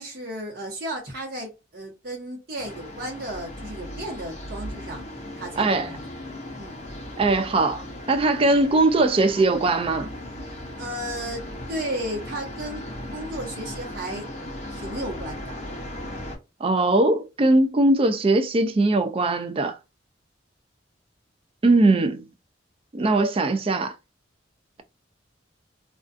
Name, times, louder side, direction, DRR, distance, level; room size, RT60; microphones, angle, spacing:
voice 1, 0.0-5.0 5.4-6.0 6.6-6.8 10.8-12.8 13.1-14.3 14.7-15.6, right 1 dB, 55° right, 1.1 m, -34 dB
sound 1, 2.6-16.4, left 1 dB, 40° left, 0.7 m, -37 dB
voice 2, 5.6-5.9 7.2-10.1 16.6-19.8 21.6-22.3 22.9-23.9, right 2 dB, 30° right, 0.3 m, -20 dB
2.4 x 2.4 x 2.4 m
head